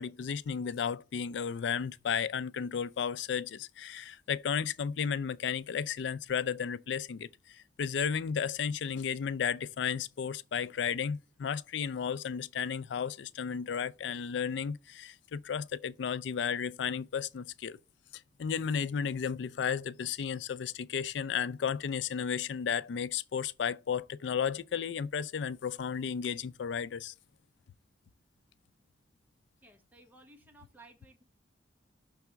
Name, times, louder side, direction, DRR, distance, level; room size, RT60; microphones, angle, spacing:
voice 1, 0.0-17.8 18.1-27.1, left 7 dB, 70° left, 0.4 m, -33 dB
voice 2, 29.6-31.2, right 2 dB, 10° right, 1.2 m, -57 dB
6.0 x 3.4 x 5.6 m
head